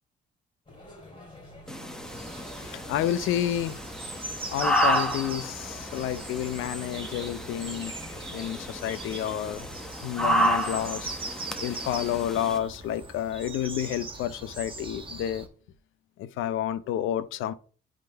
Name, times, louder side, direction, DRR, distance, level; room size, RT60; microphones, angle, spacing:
sound 1, 0.7-10.5, left 2 dB, 25° left, 3.0 m, -48 dB
sound 2, 1.7-12.6, right 1 dB, 5° left, 1.1 m, -31 dB
sound 3, 2.0-15.5, right 3 dB, 25° right, 1.3 m, -41 dB
voice 1, 2.6-3.8 4.5-7.9 8.3-9.7 10.0-15.5 16.2-17.5, left 11 dB, 85° left, 0.5 m, -30 dB
10.5 x 3.7 x 3.3 m
cardioid pair, 90°, 20 cm